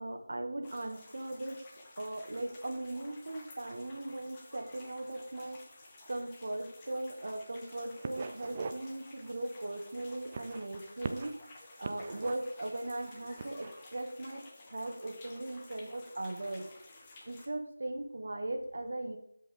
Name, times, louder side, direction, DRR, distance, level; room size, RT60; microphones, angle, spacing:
voice 1, 0.0-1.6 2.0-11.3 11.8-14.4 14.7-16.6 17.2-19.2, right 1 dB, 55° right, 4 dB, 1.7 m, -39 dB
sound 1, 0.6-17.5, left 2 dB, 20° left, 1.2 m, -54 dB
sound 2, 7.6-7.8 8.0-8.8 9.2-9.4 10.2-11.4 11.8-12.6 13.3-13.7, right 4 dB, 30° right, 0.5 m, -41 dB
13.5 x 5.4 x 3.7 m, 0.76 s
figure-of-eight pair, 165°, 0 cm